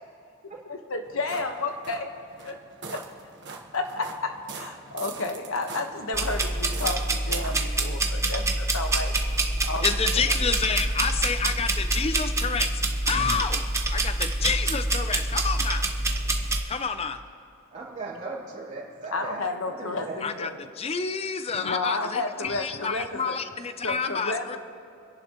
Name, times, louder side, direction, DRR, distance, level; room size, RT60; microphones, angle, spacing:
voice 1, 0.7-2.1 2.4-2.6 2.9-3.0 3.7-9.2 9.6-10.3 19.1-20.6 21.6-23.4 23.8-24.6, left 3 dB, 70° left, 5 dB, 1.3 m, -31 dB
sound 1, 1.0-7.8, right 4 dB, 55° right, 1.4 m, -42 dB
sound 2, 6.1-16.6, right 2 dB, 15° right, 0.8 m, -26 dB
voice 2, 9.8-12.7 13.0-13.6 13.9-15.9 16.7-17.2 20.2-20.5 20.8-24.6, left 5 dB, 30° left, 10 dB, 0.5 m, -29 dB
voice 3, 17.7-20.2, right 3 dB, 35° right, -7 dB, 3.3 m, -38 dB
28.0 x 11.0 x 3.0 m, 2.7 s
head